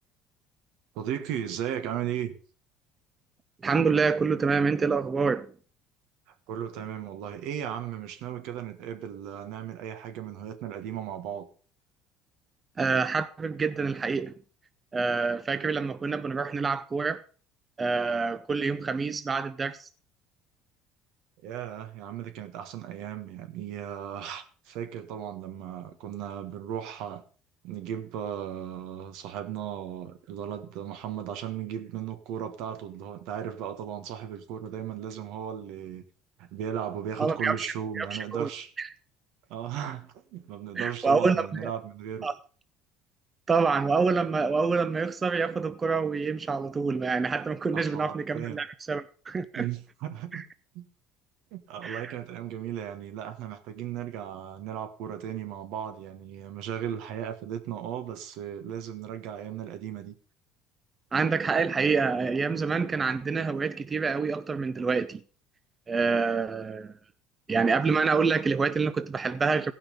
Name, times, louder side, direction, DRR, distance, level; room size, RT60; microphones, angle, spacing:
voice 1, 0.9-2.3 6.5-11.5 21.4-27.2 27.6-36.0 36.4-38.7 39.5-42.3 47.7-48.6 49.5-50.4 50.7-50.9 51.5-60.1, right 9 dB, 75° right, 1.4 m, -36 dB
voice 2, 3.6-5.5 12.8-14.3 14.9-17.2 17.8-19.9 37.2-37.7 38.0-38.5 38.8-38.9 40.8-41.7 42.2-42.3 43.5-49.7 50.3-50.4 51.8-52.1 61.1-65.2 65.9-66.9 67.5-69.7, right 4 dB, 25° right, 0.5 m, -27 dB
16.0 x 5.9 x 5.2 m
cardioid pair, 120°, 0 cm